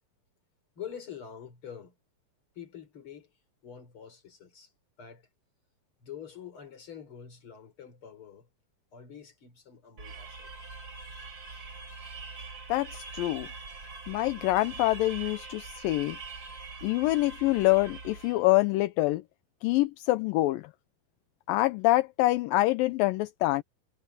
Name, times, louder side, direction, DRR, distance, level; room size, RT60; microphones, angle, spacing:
voice 1, 0.8-1.9 2.5-3.3 3.6-4.7 5.0-5.3 6.0-8.5 8.9-10.5, left 8 dB, 35° left, 4.8 m, -46 dB
sound 1, 10.0-18.5, right 4 dB, 35° right, 4.8 m, -43 dB
voice 2, 12.7-13.5 14.1-16.2 16.8-19.2 19.6-20.7 21.5-23.6, left 18 dB, 80° left, 2.3 m, -26 dB
omnidirectional pair, 4.2 m